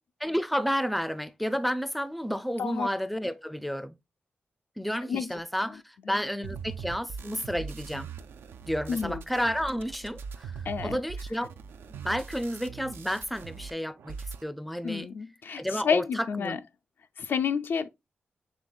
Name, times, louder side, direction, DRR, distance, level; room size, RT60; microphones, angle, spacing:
voice 1, 0.2-4.0 4.8-8.1 8.7-10.5 10.8-11.5 11.9-15.1 15.6-16.6, equal, ahead, 0.4 m, -31 dB
sound 1, 6.4-13.7 14.0-14.4, right 6 dB, 85° right, 0.3 m, -41 dB
voice 2, 8.9-9.2 10.7-11.0 14.8-16.6 17.2-17.9, left 6 dB, 70° left, 0.3 m, -30 dB
5.2 x 3.3 x 2.3 m
cardioid pair, 65°, 4 cm